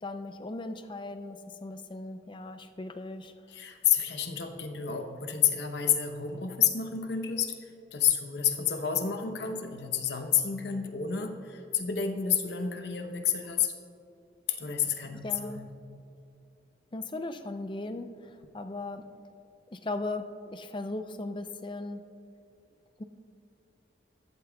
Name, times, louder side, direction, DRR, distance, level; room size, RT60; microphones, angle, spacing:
voice 1, 0.0-3.3 14.9-15.7 16.9-19.1 19.7-22.0 23.0-23.1, left 2 dB, 25° left, 9 dB, 0.5 m, -38 dB
voice 2, 3.5-13.7 14.5-15.2 15.5-15.7, left 8 dB, 70° left, 5 dB, 0.9 m, -29 dB
15.5 x 12.5 x 2.3 m, 2.6 s
head